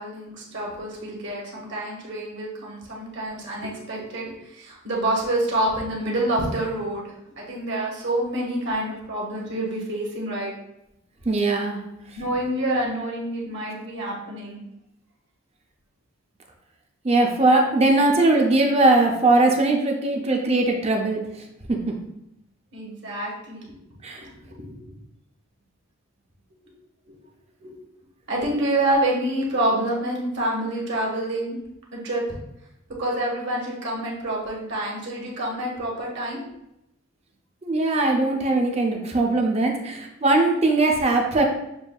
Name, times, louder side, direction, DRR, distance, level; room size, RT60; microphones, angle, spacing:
voice 1, 0.0-10.5 12.1-14.6 22.7-23.7 24.2-24.3 24.6-24.8 27.6-27.8 28.3-31.6 31.9-32.2 33.0-36.4, right 1 dB, 55° right, -3 dB, 1.2 m, -27 dB
voice 2, 11.2-12.2 17.0-22.0 24.0-24.3 37.6-41.4, right 2 dB, 30° right, 2 dB, 0.5 m, -20 dB
7.0 x 2.6 x 2.3 m, 0.84 s
head